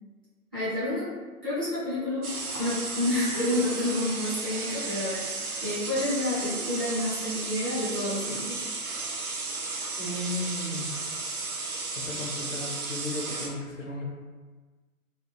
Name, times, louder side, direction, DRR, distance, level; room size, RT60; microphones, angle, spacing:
voice 1, 0.5-1.1 1.4-2.3 2.6-8.6, left 1 dB, 15° left, -14 dB, 0.4 m, -29 dB
sound 1, 2.2-13.5, right 3 dB, 75° right, 0.7 m, -34 dB
voice 2, 10.0-10.9 12.0-14.0, left 1 dB, 60° left, -2 dB, 0.8 m, -35 dB
2.3 x 2.1 x 3.2 m, 1.3 s
figure-of-eight pair, 120°, 44 cm